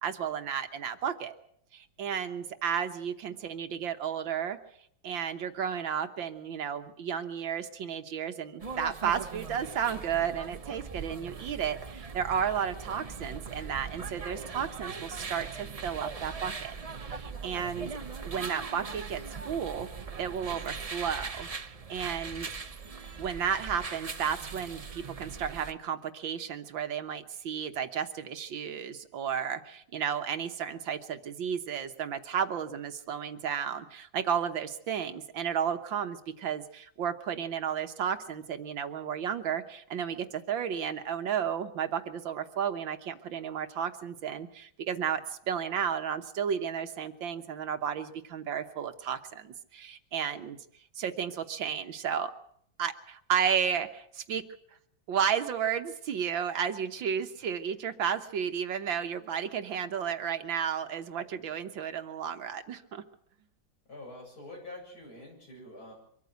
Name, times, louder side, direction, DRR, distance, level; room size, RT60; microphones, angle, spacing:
voice 1, 0.0-1.4 1.7-4.6 5.0-16.7 17.0-17.9 18.2-19.2 19.5-19.9 20.2-22.5 23.2-50.6 51.0-52.3 52.8-54.4 55.1-63.0, right 8 dB, 75° right, 8 dB, 1.8 m, -33 dB
sound 1, 8.6-25.7, right 5 dB, 50° right, 0.4 m, -40 dB
voice 2, 63.8-65.9, left 1 dB, 50° left, 0 dB, 8.4 m, -46 dB
24.0 x 14.0 x 8.1 m, 0.69 s
omnidirectional pair, 2.2 m